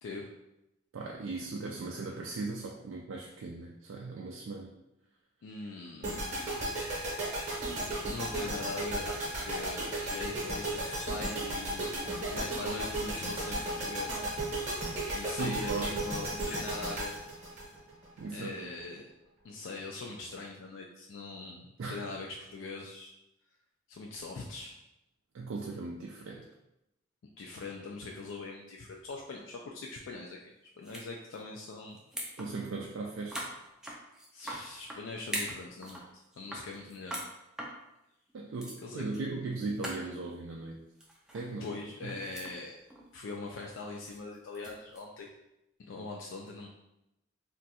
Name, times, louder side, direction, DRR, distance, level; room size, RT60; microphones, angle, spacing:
voice 1, 0.9-4.7 15.4-16.1 16.4-16.6 18.2-18.7 21.8-22.1 25.3-26.5 32.4-33.5 38.3-40.9 41.3-41.7 42.0-42.2, right 3 dB, 80° right, -1 dB, 0.3 m, -38 dB
voice 2, 5.4-6.3 8.1-14.2 15.1-17.1 18.3-19.1 19.4-23.1 23.9-24.7 27.4-30.4 30.8-32.0 34.3-36.0 36.4-37.2 38.8-39.0 41.6-42.8 43.1-45.3 45.9-46.7, left 3 dB, 75° left, -1 dB, 0.3 m, -42 dB
sound 1, 6.0-18.2, right 1 dB, 35° right, 0.8 m, -35 dB
sound 2, 30.8-31.1 31.3-31.6 31.9-32.5 32.8-32.9 33.3-35.0 35.3-36.1 36.3-37.3 37.6-37.7 38.3-38.4 38.6-38.8 39.1-39.3 39.5-39.6 39.8-40.0 41.0-41.5 41.8-42.5 42.9-43.1 44.1-45.0, right 1 dB, 5° right, 0.4 m, -40 dB
2.5 x 2.3 x 4.0 m, 0.88 s
head